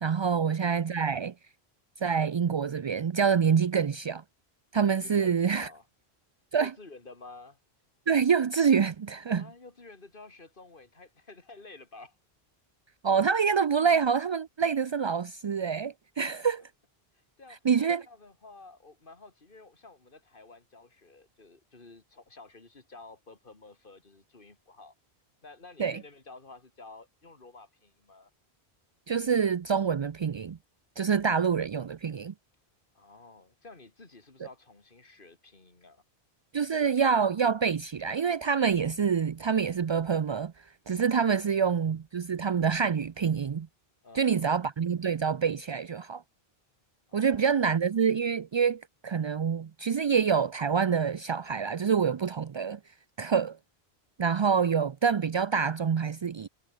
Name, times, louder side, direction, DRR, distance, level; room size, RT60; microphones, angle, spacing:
voice 1, 0.0-1.3 2.0-4.2 4.7-5.7 6.5-6.7 8.1-9.4 13.0-16.6 17.6-18.0 25.8-26.0 29.1-30.6 31.0-32.3 36.5-40.5 40.9-43.7 44.1-46.2 47.1-52.8 53.2-53.6 54.2-56.5, right 6 dB, 50° right, 0.3 m, -26 dB
voice 2, 5.0-5.9 6.6-7.6 9.3-12.2 16.6-16.7 17.1-24.9 25.4-28.3 32.9-36.0 41.4-41.6 44.0-44.7 47.1-47.7, left 3 dB, 55° left, 3.1 m, -51 dB
omnidirectional pair, 1.1 m